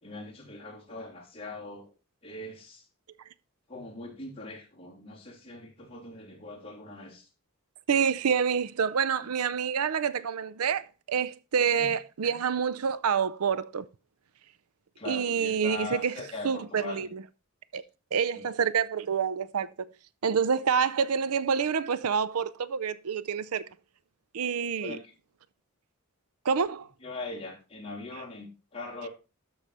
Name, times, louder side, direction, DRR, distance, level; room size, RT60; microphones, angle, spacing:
voice 1, 0.0-1.9 2.2-2.8 3.7-7.3 11.7-11.9 15.0-17.1 18.3-18.5 24.8-25.0 27.0-29.1, left 2 dB, 25° left, 3.2 m, -41 dB
voice 2, 7.9-13.9 15.1-16.1 16.4-17.2 17.7-17.8 18.1-19.9 20.2-23.6 24.3-25.0 26.4-26.9, right 6 dB, 85° right, 0.5 m, -27 dB
13.0 x 4.9 x 4.2 m
head